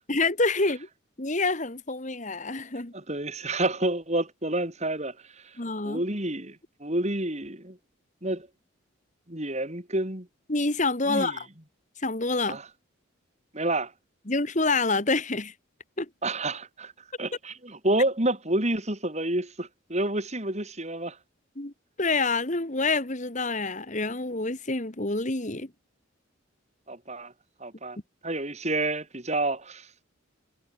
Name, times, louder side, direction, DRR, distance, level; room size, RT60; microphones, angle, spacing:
voice 1, 0.1-0.9 1.2-2.9 5.6-6.0 10.5-11.5 12.0-12.6 14.3-15.5 16.0-16.1 21.6-21.7 22.0-25.7, left 3 dB, 35° left, 1.9 m, -27 dB
voice 2, 2.9-5.6 5.8-7.8 8.2-8.5 9.3-10.3 11.1-11.4 12.5-12.7 13.5-13.9 16.2-16.9 17.2-21.2 26.9-27.3 27.6-28.0 28.2-30.0, right 1 dB, 35° right, 4.0 m, -29 dB
head